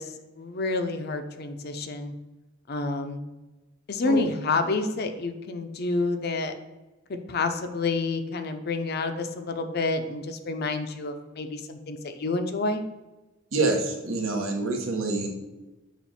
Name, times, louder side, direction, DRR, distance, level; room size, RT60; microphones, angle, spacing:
voice 1, 0.0-2.1 2.7-3.2 3.9-6.5 7.1-12.8, left 3 dB, 50° left, 7 dB, 0.6 m, -29 dB
voice 2, 13.5-15.3, right 3 dB, 85° right, 1 dB, 1.2 m, -26 dB
7.1 x 2.5 x 5.7 m, 1.1 s
head